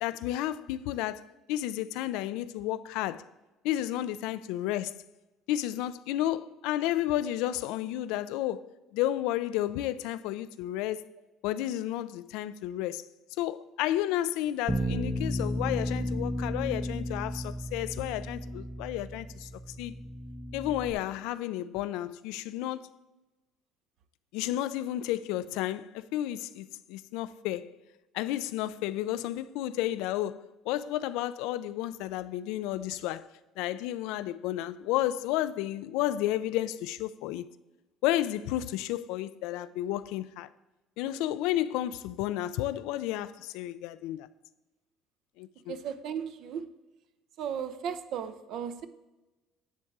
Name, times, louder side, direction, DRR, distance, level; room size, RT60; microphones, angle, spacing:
voice 1, 0.0-3.2 3.6-5.0 5.5-8.6 8.9-11.1 11.4-13.0 13.4-19.5 19.8-19.9 20.5-22.9 24.3-27.8 28.1-33.2 33.6-37.4 38.0-40.5 41.0-44.3 45.4-45.8, left 13 dB, 85° left, 0.4 m, -32 dB
Bass guitar, 14.7-20.9, equal, 10° right, 0.6 m, -34 dB
voice 2, 45.7-46.7 47.4-48.9, right 8 dB, 65° right, 0.5 m, -35 dB
9.9 x 3.5 x 6.0 m
cardioid pair, 115°, 0 cm